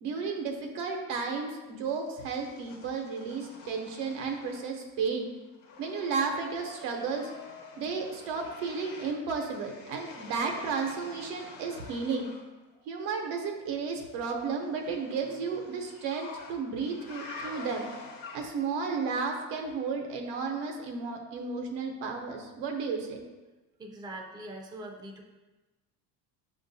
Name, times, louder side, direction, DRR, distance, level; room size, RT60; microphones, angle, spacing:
voice 1, 0.0-5.3 5.8-7.3 7.8-12.3 12.9-17.9 18.3-23.2, right 5 dB, 85° right, 3 dB, 0.8 m, -33 dB
sound 1, 1.9-4.9 5.2-12.5 14.0-18.8, left 3 dB, 60° left, 1.0 m, -48 dB
voice 2, 23.8-25.2, right 1 dB, 10° right, 0 dB, 0.4 m, -42 dB
6.6 x 2.5 x 2.6 m, 1.2 s
cardioid pair, 110°, 40 cm